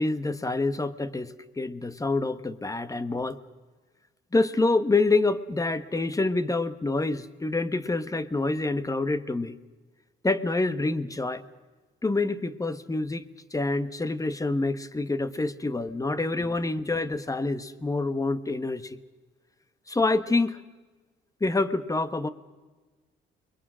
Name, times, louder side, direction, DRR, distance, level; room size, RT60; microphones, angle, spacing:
voice 1, 0.0-3.4 4.3-9.5 10.2-11.4 12.0-19.0 19.9-20.6 21.4-22.3, left 2 dB, 15° left, 13 dB, 1.3 m, -27 dB
29.5 x 22.0 x 6.3 m, 1.3 s
cardioid pair, 90°, 20 cm